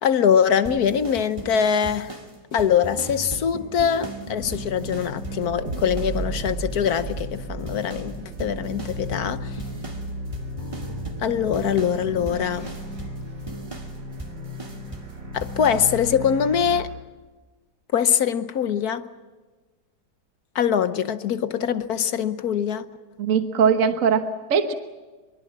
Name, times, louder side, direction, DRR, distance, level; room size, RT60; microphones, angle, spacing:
voice 1, 0.0-2.2 2.5-9.6 11.2-12.7 15.3-16.9 17.9-19.1 20.5-22.8, left 8 dB, 65° left, 1.4 m, -23 dB
sound 1, 0.6-6.2 6.4-7.4 7.7-15.1 15.4-15.9, right 2 dB, 20° right, 2.2 m, -37 dB
sound 2, 4.4-16.8, right 1 dB, 80° right, 5.7 m, -34 dB
voice 2, 23.2-24.7, right 6 dB, 50° right, 1.5 m, -21 dB
23.5 x 23.5 x 7.4 m
omnidirectional pair, 1.8 m